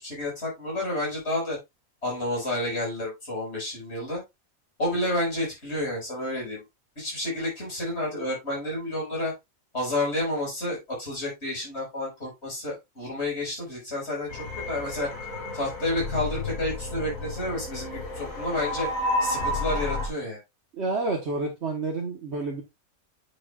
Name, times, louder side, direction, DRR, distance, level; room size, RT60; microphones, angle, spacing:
voice 1, 0.0-1.6 2.0-4.2 4.8-6.6 7.0-9.3 9.7-15.1 15.5-18.9 19.2-20.4, left 1 dB, 50° left, -3 dB, 5.5 m, -30 dB
sound 1, 14.3-20.1, left 2 dB, 80° left, 3.2 m, -31 dB
voice 2, 20.7-22.6, right 3 dB, 55° right, 1 dB, 1.5 m, -29 dB
8.7 x 6.8 x 2.4 m, 0.21 s
omnidirectional pair, 1.4 m